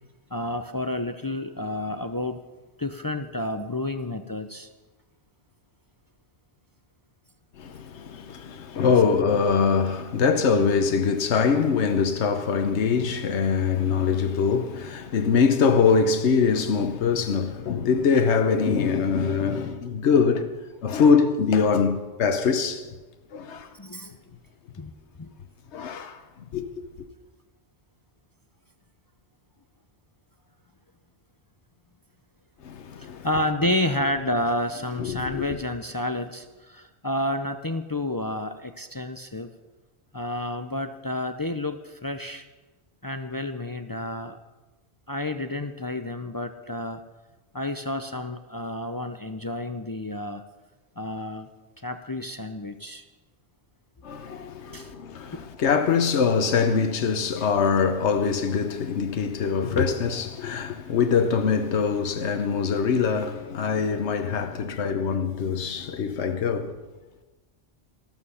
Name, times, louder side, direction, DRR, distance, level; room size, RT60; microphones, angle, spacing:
voice 1, 0.3-2.4 2.8-4.7 23.7-24.1 24.8-24.9 25.2-25.3 33.0-39.5 40.1-42.4 43.0-44.4 45.1-47.0 47.5-50.4 51.0-51.5 51.8-53.0 54.7-54.9 55.3-55.4 57.4-57.5, left 1 dB, 30° left, 0.4 m, -30 dB
voice 2, 7.6-20.5 20.8-22.9 23.3-23.7 25.7-26.2 26.5-26.7 32.6-33.3 35.0-35.4 54.0-66.8, left 5 dB, 85° left, 1.2 m, -23 dB
13.5 x 13.0 x 5.6 m
omnidirectional pair, 1.1 m